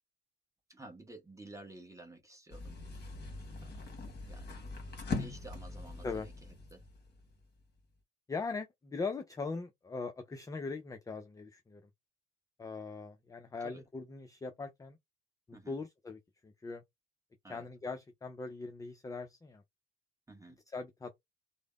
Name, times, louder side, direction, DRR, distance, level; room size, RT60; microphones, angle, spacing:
voice 1, 0.7-2.8 3.6-3.9 4.3-4.7 5.1-6.8 13.6-13.8 15.5-15.8 17.4-17.7 20.3-20.6, right 2 dB, 10° right, 1.1 m, -52 dB
sound 1, 2.5-7.6, left 3 dB, 30° left, 1.1 m, -42 dB
voice 2, 8.3-11.8 12.6-15.0 15.7-16.8 17.5-19.6 20.7-21.1, left 4 dB, 10° left, 0.4 m, -40 dB
3.2 x 2.1 x 2.3 m
hypercardioid pair, 55°, 32 cm